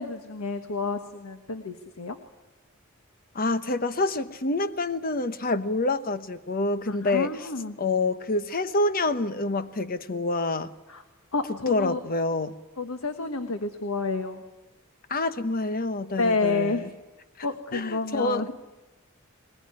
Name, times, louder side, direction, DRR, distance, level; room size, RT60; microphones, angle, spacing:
voice 1, 0.0-2.2 6.9-7.8 10.9-11.0 11.3-12.0 12.8-14.4 16.2-16.9 17.4-18.6, left 3 dB, 90° left, 1.4 m, -29 dB
voice 2, 3.3-7.3 7.8-10.7 11.7-12.5 15.1-16.9 17.7-18.4, left 2 dB, 45° left, 1.0 m, -27 dB
21.0 x 21.0 x 9.7 m
head